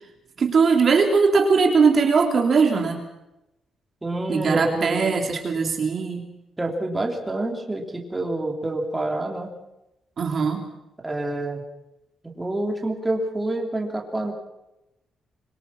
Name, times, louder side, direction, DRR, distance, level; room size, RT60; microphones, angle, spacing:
voice 1, 0.4-3.0 4.3-6.3 10.2-10.7, right 5 dB, 40° right, 4 dB, 2.9 m, -20 dB
voice 2, 4.0-5.2 6.6-9.5 11.0-11.6 12.3-14.3, right 2 dB, 10° right, 1 dB, 3.3 m, -27 dB
25.0 x 23.0 x 5.9 m, 0.92 s
cardioid pair, 165°, 0 cm